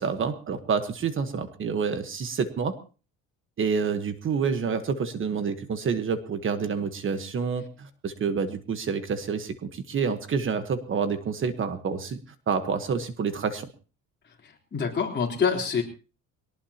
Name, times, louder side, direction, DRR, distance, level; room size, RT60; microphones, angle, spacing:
voice 1, 0.0-2.8 3.6-12.2 12.5-13.7, right 5 dB, 40° right, 9 dB, 1.3 m, -28 dB
voice 2, 14.7-15.8, left 6 dB, 35° left, 1 dB, 3.7 m, -25 dB
22.0 x 18.5 x 2.9 m, 0.36 s
cardioid pair, 140°, 32 cm